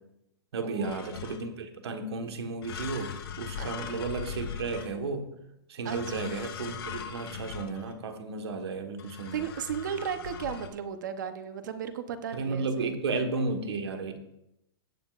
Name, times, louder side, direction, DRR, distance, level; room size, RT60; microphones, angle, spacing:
voice 1, 0.5-5.3 5.7-9.3 12.3-14.2, right 3 dB, 80° right, 6 dB, 1.5 m, -33 dB
sound 1, 0.8-1.7 2.6-5.3 5.9-8.1 9.0-10.7, left 8 dB, 75° left, 2.2 m, -40 dB
voice 2, 9.3-12.9, right 8 dB, 50° right, 10 dB, 0.9 m, -35 dB
17.5 x 7.3 x 2.5 m, 0.85 s
hypercardioid pair, 180°, 13 cm